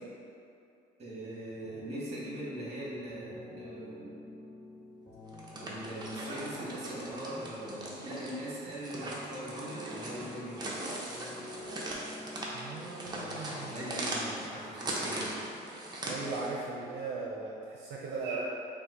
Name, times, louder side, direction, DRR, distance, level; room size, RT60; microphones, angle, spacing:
voice 1, 1.0-4.1 5.6-10.8 13.6-15.4, right 1 dB, 40° right, -6 dB, 1.5 m, -41 dB
sound 1, 1.6-14.3, left 1 dB, 5° left, 1.4 m, -49 dB
sound 2, 5.3-16.6, right 1 dB, 25° right, 0.7 m, -40 dB
voice 2, 12.5-14.1 16.1-18.5, right 3 dB, 80° right, -4 dB, 0.6 m, -38 dB
5.6 x 2.1 x 3.8 m, 2.6 s
cardioid pair, 110°, 17 cm